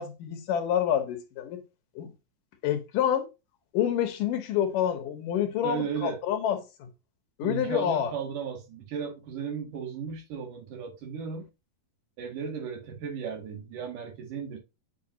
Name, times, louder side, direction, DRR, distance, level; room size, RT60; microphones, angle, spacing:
voice 1, 0.0-1.6 2.0-2.1 2.6-3.3 3.7-6.9 7.4-8.1, left 9 dB, 75° left, 2.6 m, -28 dB
voice 2, 5.6-6.2 7.4-11.5 12.2-14.6, right 7 dB, 65° right, 3.5 m, -35 dB
8.6 x 5.8 x 2.7 m
omnidirectional pair, 4.0 m